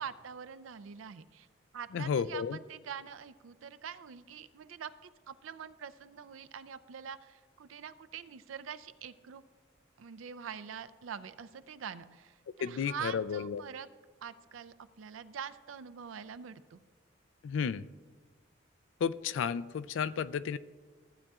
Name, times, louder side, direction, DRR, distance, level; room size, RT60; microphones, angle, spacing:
voice 1, 0.0-1.5 1.7-9.4 10.0-13.9 14.2-16.8, right 7 dB, 85° right, 13 dB, 0.4 m, -44 dB
voice 2, 1.9-2.6 12.6-13.6 17.4-17.8 19.0-20.6, left 6 dB, 70° left, 16 dB, 0.3 m, -32 dB
14.5 x 8.6 x 2.4 m, 1.4 s
head